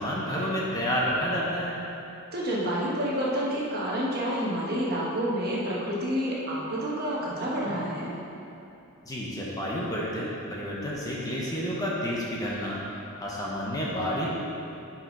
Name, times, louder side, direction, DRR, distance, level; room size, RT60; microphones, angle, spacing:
voice 1, 0.0-1.8 9.0-12.8 13.2-14.3, equal, 15° left, -5 dB, 0.8 m, -30 dB
voice 2, 2.3-8.1, equal, 45° right, -5 dB, 1.3 m, -29 dB
5.8 x 5.7 x 5.3 m, 2.8 s
head